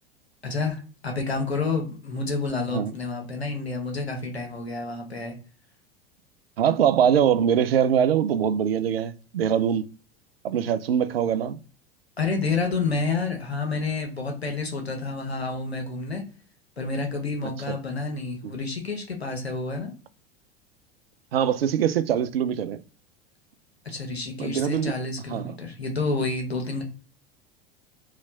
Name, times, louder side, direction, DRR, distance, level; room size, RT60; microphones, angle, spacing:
voice 1, 0.4-5.3 12.2-16.2 16.8-19.9 23.8-26.8, left 3 dB, 90° left, 1.1 m, -29 dB
voice 2, 6.6-9.9 10.4-11.6 17.7-17.8 21.3-22.8 24.4-24.9 25.3-25.5, right 9 dB, 70° right, 0.5 m, -23 dB
3.2 x 3.1 x 3.9 m
figure-of-eight pair, 85°, 30 cm